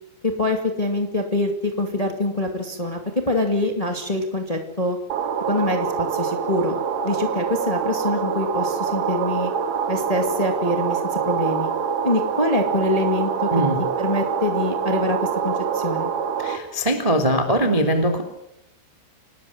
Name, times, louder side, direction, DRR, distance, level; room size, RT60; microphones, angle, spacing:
voice 1, 0.2-3.0 3.3-5.0 5.5-9.5 9.9-11.7 12.0-13.5 14.0-16.1, left 1 dB, 65° left, 4 dB, 0.3 m, -24 dB
sound 1, 5.1-16.6, right 7 dB, 60° right, 3.5 m, -25 dB
voice 2, 16.4-18.2, right 1 dB, 10° right, 6 dB, 2.2 m, -21 dB
27.0 x 19.0 x 7.4 m, 0.81 s
omnidirectional pair, 5.4 m